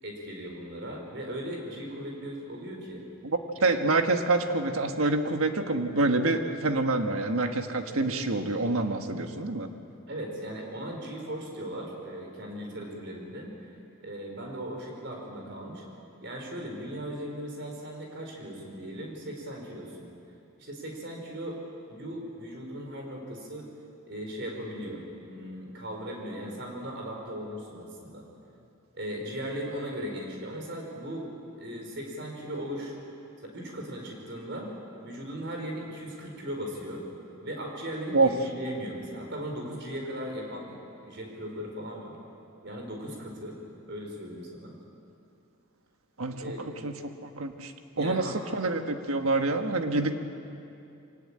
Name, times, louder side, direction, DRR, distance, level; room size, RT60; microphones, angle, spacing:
voice 1, 0.0-3.0 10.1-13.7 14.0-15.8 16.2-20.1 20.6-21.6 21.9-23.7 24.1-28.2 28.9-31.3 31.6-33.0 33.4-34.7 35.0-37.1 37.4-40.8 41.0-42.1 42.6-43.6 43.9-44.7 46.4-46.6 48.0-48.4, equal, 55° right, 1 dB, 4.8 m, -38 dB
voice 2, 3.6-9.7 38.1-38.3 46.2-46.5 46.8-46.9 47.2-50.1, right 2 dB, 90° right, 6 dB, 1.5 m, -26 dB
23.5 x 18.5 x 8.7 m, 2.7 s
head